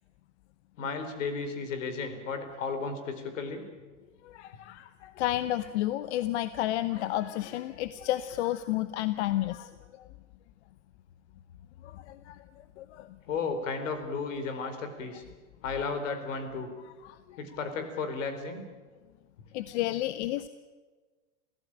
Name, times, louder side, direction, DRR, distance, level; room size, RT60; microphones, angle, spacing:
voice 1, 0.8-3.6 13.3-15.2 15.6-16.7 17.4-18.6, left 4 dB, 80° left, 8 dB, 4.5 m, -34 dB
voice 2, 4.2-9.7 10.0-10.1 11.8-12.4 12.8-13.2 17.0-17.4 19.5-20.5, left 14 dB, 60° left, 13 dB, 1.0 m, -31 dB
27.5 x 15.5 x 8.9 m, 1.3 s
supercardioid pair, 140°, 38 cm